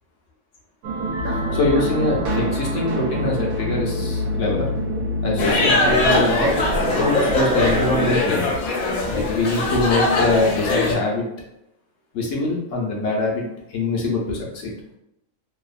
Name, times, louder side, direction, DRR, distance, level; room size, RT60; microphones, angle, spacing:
sound 1, 0.8-8.2, equal, 85° right, 1.0 m, -26 dB
voice 1, 1.2-4.7 5.2-6.5 6.9-8.5 9.1-11.2 12.1-13.4 13.7-14.7, left 2 dB, 70° left, -1 dB, 1.0 m, -23 dB
sound 2, 5.4-10.9, left 2 dB, 90° left, 1.1 m, -21 dB
2.7 x 2.3 x 2.4 m, 0.82 s
omnidirectional pair, 1.4 m